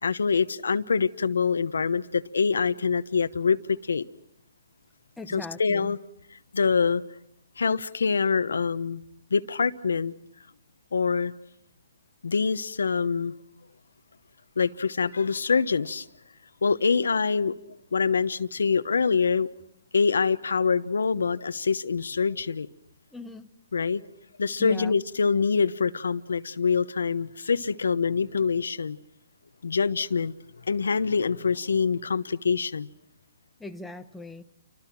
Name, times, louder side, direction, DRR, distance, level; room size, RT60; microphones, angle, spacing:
voice 1, 0.0-4.0 5.3-6.0 6.5-7.0 7.6-9.0 9.3-10.1 10.9-11.3 12.2-13.3 14.6-16.1 16.6-17.5 17.9-19.5 19.9-22.7 23.7-24.0 24.4-29.0 29.6-30.3 30.7-32.9, left 5 dB, 85° left, 1.0 m, -25 dB
voice 2, 5.2-6.0 23.1-23.5 24.6-25.0 33.6-34.4, left 3 dB, 5° left, 0.9 m, -39 dB
29.5 x 24.5 x 6.0 m
hypercardioid pair, 160°, 0 cm